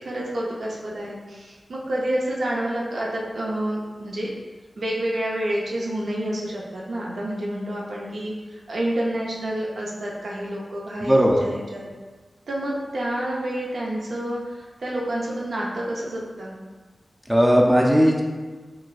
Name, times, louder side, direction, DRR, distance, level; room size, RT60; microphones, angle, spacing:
voice 1, 0.0-4.3 4.8-11.1 11.4-11.8 12.5-16.5, right 1 dB, 80° right, -4 dB, 0.5 m, -29 dB
voice 2, 11.0-11.4 17.3-18.2, equal, 10° right, -1 dB, 0.4 m, -17 dB
3.9 x 2.2 x 2.3 m, 1.4 s
cardioid pair, 50°, 0 cm